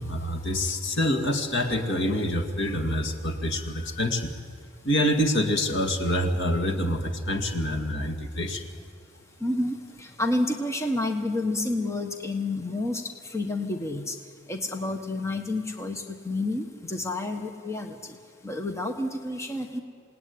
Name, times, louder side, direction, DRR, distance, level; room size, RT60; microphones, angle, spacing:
voice 1, 0.0-4.3 4.8-8.7, left 1 dB, 60° left, 4 dB, 2.3 m, -26 dB
voice 2, 9.4-13.0 13.3-14.1 14.5-17.9 18.4-19.8, left 2 dB, 15° left, 4 dB, 1.4 m, -29 dB
28.0 x 18.5 x 9.7 m, 2.1 s
head